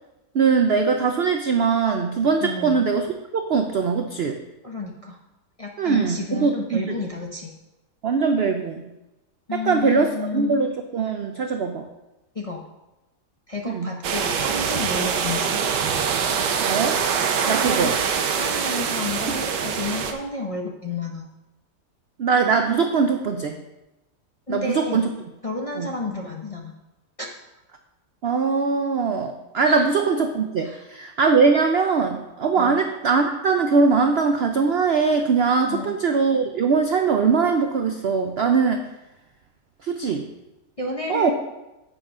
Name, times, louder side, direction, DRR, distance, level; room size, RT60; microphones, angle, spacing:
voice 1, 0.3-3.1 3.3-4.4 5.8-7.0 8.0-8.9 9.6-11.9 13.6-13.9 16.6-17.0 17.5-17.9 22.2-23.6 24.5-25.1 25.8-25.9 28.2-38.8 39.8-40.3 41.1-41.3, right 5 dB, 65° right, 5 dB, 0.6 m, -21 dB
voice 2, 2.4-2.9 4.6-5.2 5.6-7.5 9.5-10.5 12.3-12.6 13.5-15.6 17.3-17.9 18.3-21.3 24.5-25.1 25.4-26.7 29.6-29.9 30.6-30.8 32.5-32.8 35.7-36.0 40.8-41.3, left 3 dB, 35° left, 0 dB, 0.6 m, -31 dB
sound 1, 14.0-20.1, right 6 dB, 90° right, 1.4 m, -24 dB
9.8 x 7.9 x 3.7 m, 0.99 s
omnidirectional pair, 1.7 m